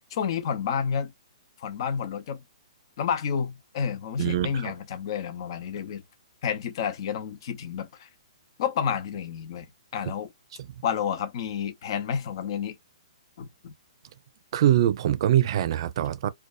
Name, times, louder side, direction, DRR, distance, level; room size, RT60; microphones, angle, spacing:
voice 1, 0.1-1.1 1.6-2.4 3.0-6.0 6.4-8.1 8.6-9.7 9.9-10.3 10.8-12.8 13.4-13.7, left 7 dB, 50° left, 0.7 m, -30 dB
voice 2, 4.2-4.7 10.6-10.8 14.5-16.3, right 12 dB, 55° right, 0.5 m, -23 dB
2.6 x 2.2 x 2.3 m
hypercardioid pair, 135°, 3 cm